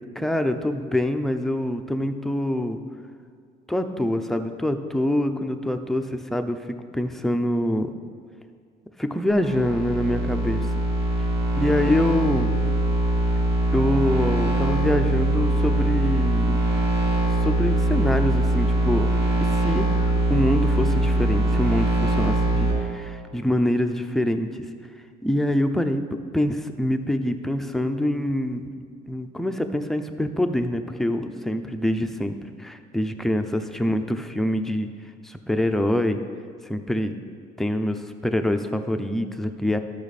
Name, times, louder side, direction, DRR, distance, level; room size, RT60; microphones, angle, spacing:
voice 1, 0.2-2.8 3.7-6.6 6.9-7.9 9.0-10.7 11.6-12.6 13.7-16.6 17.4-19.1 19.6-24.7 25.2-26.0 26.3-28.7 29.1-34.9 35.2-36.2 36.7-37.2 37.6-39.8, left 1 dB, ahead, 6 dB, 0.5 m, -25 dB
sound 1, 9.3-22.7, right 1 dB, 80° right, 1.6 m, -22 dB
12.5 x 5.7 x 4.1 m, 2.1 s
cardioid pair, 110°, 17 cm